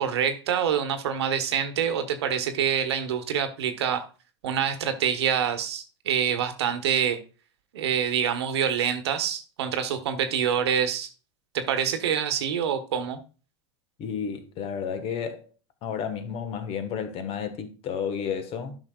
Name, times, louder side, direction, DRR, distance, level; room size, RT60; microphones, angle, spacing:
voice 1, 0.0-4.1 4.4-7.2 7.7-11.1 11.5-13.2, right 8 dB, 70° right, 1.2 m, -26 dB
voice 2, 14.0-15.4 15.8-18.8, left 7 dB, 40° left, 1.4 m, -32 dB
12.0 x 5.8 x 2.4 m
hypercardioid pair, 85°, 14 cm